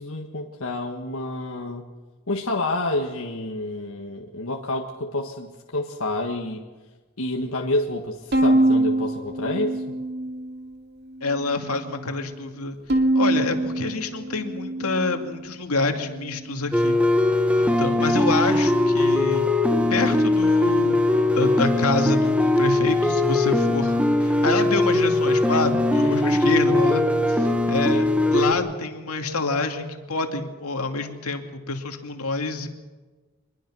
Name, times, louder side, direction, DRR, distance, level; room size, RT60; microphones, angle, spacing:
voice 1, 0.0-1.8 2.3-6.6 7.2-9.9 26.0-26.4, left 2 dB, 70° left, 1 dB, 1.7 m, -29 dB
Bowed string instrument, 8.3-10.7 11.1-11.9 12.9-15.4, right 1 dB, 50° right, 2.5 m, -24 dB
voice 2, 11.2-12.8 13.1-17.0 17.6-19.5 19.9-21.0 21.3-28.0 28.3-32.7, left 3 dB, 90° left, 5 dB, 2.4 m, -27 dB
sound 1, 16.7-28.5, left 2 dB, 5° right, 1.4 m, -20 dB
25.0 x 21.5 x 6.3 m, 1.3 s
head